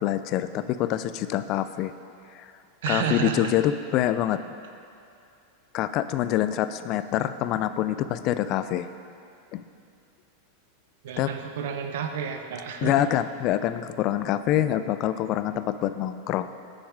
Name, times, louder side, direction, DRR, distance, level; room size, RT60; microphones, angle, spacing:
voice 1, 0.0-1.9 2.3-2.5 2.9-4.4 5.7-8.9 9.5-9.6 11.2-11.3 12.8-16.5, left 12 dB, 45° left, 12 dB, 0.3 m, -25 dB
voice 2, 2.8-3.6 11.0-13.0, right 7 dB, 75° right, 5 dB, 0.6 m, -30 dB
6.5 x 6.3 x 4.7 m, 2.5 s
supercardioid pair, 125°, 0 cm